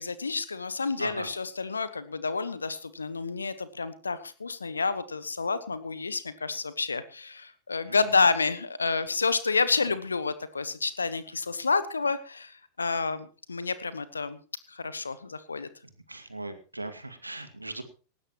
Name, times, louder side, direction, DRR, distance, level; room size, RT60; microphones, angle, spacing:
voice 1, 0.0-14.4 14.7-15.7, left 4 dB, 75° left, 15 dB, 1.2 m, -29 dB
voice 2, 16.1-17.8, right 2 dB, 85° right, 9 dB, 2.2 m, -38 dB
19.0 x 16.0 x 3.1 m, 0.36 s
figure-of-eight pair, 90°, 0 cm